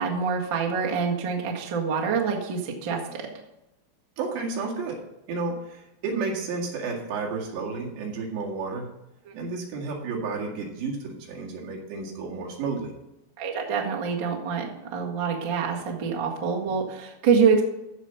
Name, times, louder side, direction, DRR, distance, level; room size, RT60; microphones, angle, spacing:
voice 1, 0.0-3.3 9.2-9.3 13.4-17.6, right 6 dB, 50° right, -1 dB, 1.4 m, -26 dB
voice 2, 4.2-5.0 5.3-8.9 9.3-12.9, right 4 dB, 85° right, -1 dB, 4.3 m, -31 dB
14.5 x 5.2 x 5.7 m, 0.91 s
omnidirectional pair, 4.9 m